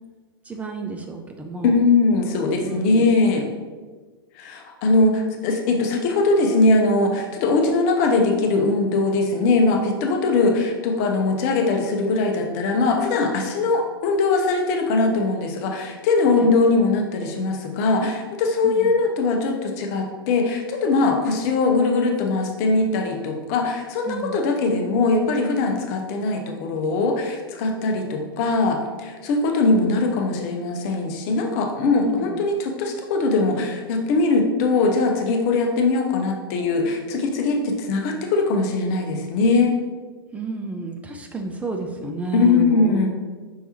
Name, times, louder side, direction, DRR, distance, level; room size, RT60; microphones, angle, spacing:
voice 1, 0.4-1.8 2.6-3.1 16.3-16.5 18.6-19.0 24.0-24.4 32.0-32.4 40.3-43.0, right 3 dB, 10° right, 3 dB, 0.3 m, -31 dB
voice 2, 1.6-3.4 4.4-39.7 42.3-43.1, left 3 dB, 40° left, 3 dB, 0.7 m, -21 dB
5.5 x 3.3 x 2.9 m, 1.4 s
figure-of-eight pair, 95°, 13 cm